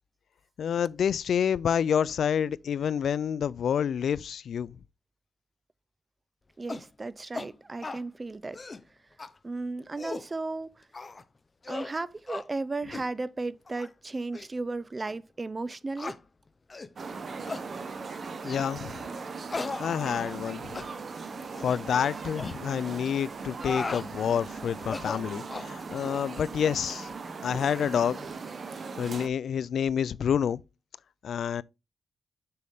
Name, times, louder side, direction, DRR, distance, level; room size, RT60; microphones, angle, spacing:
voice 1, 0.6-4.8 18.4-19.0 19.8-20.7 21.6-27.1 27.4-28.3 29.0-30.6 31.2-31.6, left 8 dB, 85° left, 0.3 m, -28 dB
voice 2, 6.6-8.6 9.4-10.7 11.7-16.2, right 3 dB, 25° right, 0.5 m, -35 dB
sound 1, 6.7-6.9 7.3-7.5 7.8-8.0 8.4-8.8 9.2-9.3 9.8-10.3 10.9-11.2 11.6-11.9 12.3-12.5 12.9-13.1 13.7-13.9 14.3-14.5 15.1-15.2 16.0-16.2 16.7-16.9 17.5-17.7 18.4-18.7 19.5-20.5 20.7-20.9 21.5-21.8 22.3-22.5 23.4-24.1 24.8-25.7, left 3 dB, 30° left, 0.6 m, -37 dB
sound 2, 17.0-29.3, right 4 dB, 55° right, 1.0 m, -39 dB
6.8 x 6.4 x 3.5 m
wide cardioid pair, 110°, 0 cm